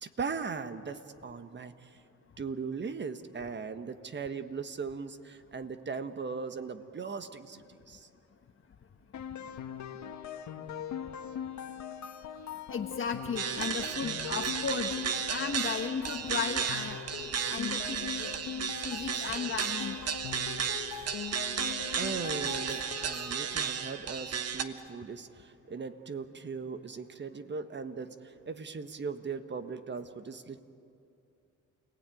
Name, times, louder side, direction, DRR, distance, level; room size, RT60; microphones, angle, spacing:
voice 1, 0.0-2.0 2.4-8.1 20.6-20.7 22.0-30.6, right 5 dB, 35° right, 10 dB, 1.5 m, -39 dB
sound 1, 9.1-23.8, left 8 dB, 70° left, 1.5 m, -41 dB
voice 2, 12.7-17.0 17.5-20.0, left 6 dB, 40° left, 3 dB, 1.5 m, -35 dB
sound 2, 13.4-24.6, right 7 dB, 55° right, 1.4 m, -34 dB
29.0 x 19.0 x 9.3 m, 2.5 s
cardioid pair, 90°, 30 cm